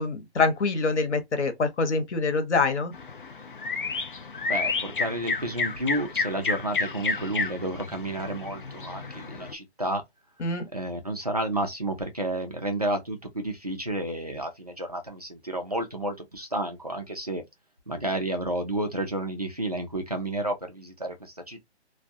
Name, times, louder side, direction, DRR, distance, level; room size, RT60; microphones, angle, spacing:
voice 1, 0.0-2.9 10.4-10.7, left 3 dB, 85° left, 1.0 m, -25 dB
sound 1, 2.9-9.5, left 4 dB, 50° left, 0.5 m, -31 dB
voice 2, 4.4-10.0 10.7-17.4 17.9-21.7, right 1 dB, 35° right, 0.4 m, -31 dB
2.3 x 2.2 x 2.6 m
hypercardioid pair, 175°, 34 cm